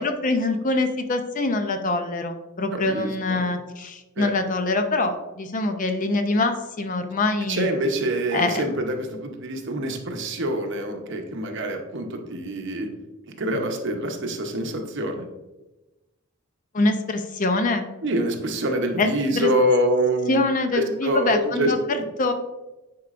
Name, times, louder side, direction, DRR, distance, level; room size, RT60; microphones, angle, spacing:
voice 1, 0.0-7.7 8.3-8.6 16.7-17.9 19.0-19.1 19.4-19.5 20.3-22.3, left 2 dB, 35° left, 7 dB, 0.5 m, -24 dB
voice 2, 2.7-3.5 4.2-4.3 7.5-12.9 13.4-15.2 18.0-20.4 20.7-22.0, right 1 dB, 55° right, 4 dB, 0.8 m, -25 dB
9.5 x 4.5 x 2.5 m, 1.1 s
head